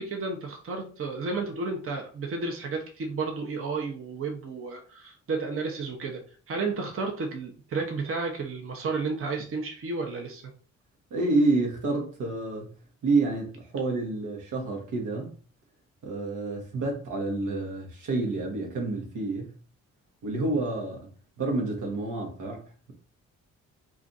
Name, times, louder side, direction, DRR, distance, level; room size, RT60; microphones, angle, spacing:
voice 1, 0.0-10.4, right 4 dB, 45° right, 0.8 m, -32 dB
voice 2, 11.1-15.3 16.0-19.5 20.2-21.1 21.4-23.0, right 3 dB, 80° right, 1.0 m, -29 dB
2.5 x 2.4 x 3.9 m
cardioid pair, 75°, 30 cm